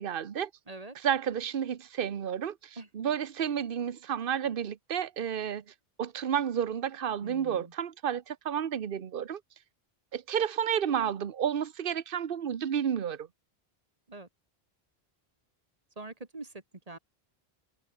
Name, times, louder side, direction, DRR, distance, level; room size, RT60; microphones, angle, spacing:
voice 1, 0.0-0.5 1.0-5.6 6.0-9.4 10.1-13.3, right 8 dB, 60° right, 1.1 m, -31 dB
voice 2, 0.7-1.0 2.8-2.9 7.2-7.7 14.1-14.3 16.0-17.0, right 2 dB, 35° right, 1.9 m, -44 dB
omnidirectional pair, 1.1 m